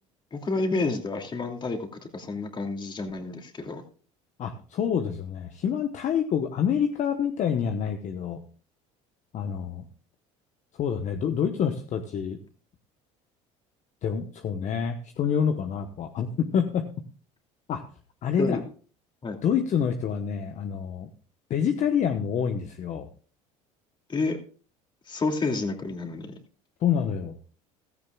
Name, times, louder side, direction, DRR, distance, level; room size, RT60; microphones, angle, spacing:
voice 1, 0.3-1.9 2.1-3.8 18.4-18.6 19.2-19.4 24.1-24.4 25.1-26.4, left 3 dB, 30° left, 4 dB, 2.6 m, -29 dB
voice 2, 4.4-8.4 9.3-9.8 10.8-12.4 14.0-16.9 17.7-17.8 18.2-18.6 19.4-21.1 21.5-23.1 26.8-27.3, left 7 dB, 50° left, 6 dB, 1.1 m, -27 dB
15.5 x 13.5 x 2.4 m, 0.39 s
supercardioid pair, 85°, 16 cm